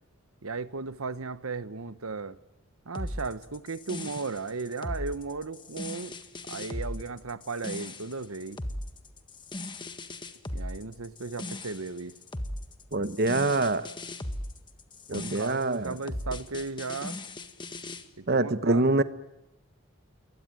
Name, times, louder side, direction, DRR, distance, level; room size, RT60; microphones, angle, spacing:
voice 1, 0.4-2.4 2.8-6.1 6.5-8.6 10.5-12.1 15.1-17.2 18.2-19.0, right 4 dB, 85° right, 1.2 m, -36 dB
sound 1, 2.9-18.0, left 1 dB, 20° left, 1.6 m, -38 dB
voice 2, 12.9-13.9 15.1-15.9 18.3-19.0, right 2 dB, 50° right, 1.0 m, -25 dB
27.5 x 22.5 x 9.1 m
head